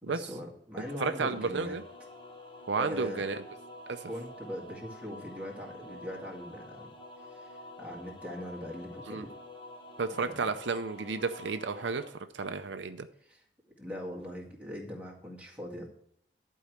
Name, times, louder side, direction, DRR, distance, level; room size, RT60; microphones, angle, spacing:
voice 1, 0.0-1.8 2.8-3.2 4.0-6.9 7.3-7.5 7.8-9.2 10.1-10.5 13.3-13.4 13.8-15.9, equal, 10° right, -2 dB, 2.0 m, -41 dB
sound 1, 0.8-12.1, left 1 dB, 25° left, 1.4 m, -48 dB
voice 2, 1.0-1.8 2.7-3.4 3.9-4.0 9.1-9.2 10.0-12.0 12.3-13.1, right 4 dB, 80° right, 8 dB, 0.6 m, -32 dB
11.5 x 4.7 x 6.6 m, 0.69 s
head